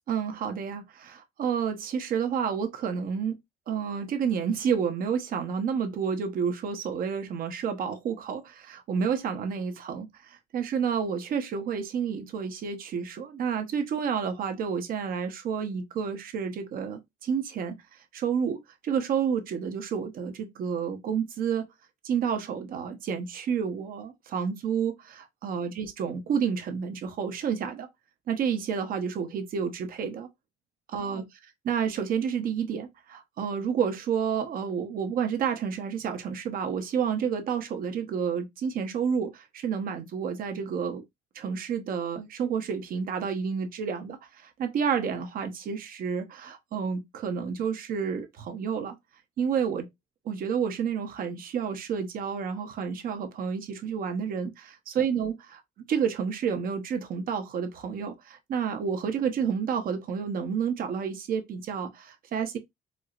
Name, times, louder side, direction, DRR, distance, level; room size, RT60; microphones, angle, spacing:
voice 1, 0.1-3.4 3.7-17.8 18.1-18.6 18.8-21.7 22.0-27.9 28.3-30.3 30.9-31.2 31.6-41.0 41.3-49.0 49.4-49.9 50.2-55.6 55.9-62.6, right 7 dB, 60° right, 0.8 m, -30 dB
4.4 x 2.0 x 2.4 m
cardioid pair, 110°, 17 cm